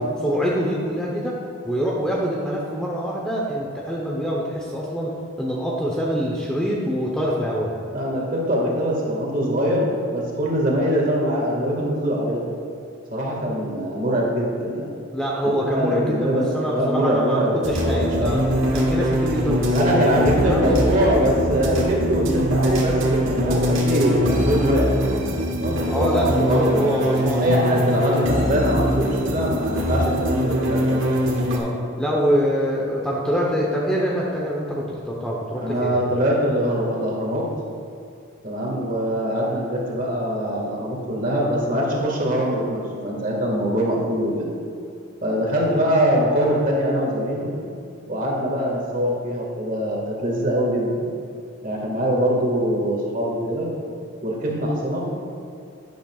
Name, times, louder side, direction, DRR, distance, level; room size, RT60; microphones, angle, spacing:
voice 1, 0.2-1.4 1.6-7.7 15.1-18.4 18.7-21.1 25.9-27.9 31.5-31.7 32.0-36.1, equal, 5° left, -4 dB, 0.8 m, -25 dB
voice 2, 7.9-12.4 13.1-14.9 15.6-18.4 19.7-24.9 25.6-31.0 35.5-37.4 38.4-44.5 45.2-47.5 48.1-51.0 51.6-53.7 54.2-55.1, equal, 40° right, -3 dB, 1.8 m, -23 dB
sound 1, 17.6-31.6, equal, 70° right, 1.6 m, -22 dB
11.5 x 10.0 x 2.4 m, 2.4 s
head